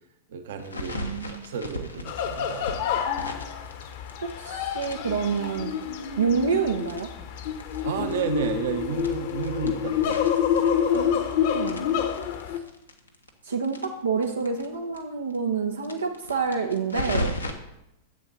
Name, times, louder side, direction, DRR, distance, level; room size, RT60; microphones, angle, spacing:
voice 1, 0.3-2.7 7.8-10.0 10.6-10.7, right 8 dB, 60° right, 7 dB, 1.1 m, -32 dB
sound 1, 0.6-4.5 4.8-7.8 8.1-8.2 8.4-8.5 8.9-11.3 11.6-14.7 14.9-15.0 15.3-15.4 15.8-17.5, left 1 dB, 90° left, 1.2 m, -36 dB
voice 2, 0.9-1.4 4.4-5.7 6.2-7.1 10.9-11.8 13.4-17.3, right 5 dB, 80° right, 2 dB, 0.9 m, -28 dB
sound 2, 2.0-12.6, left 8 dB, 55° left, 1.1 m, -28 dB
11.0 x 7.6 x 4.2 m, 0.84 s
figure-of-eight pair, 95°, 0 cm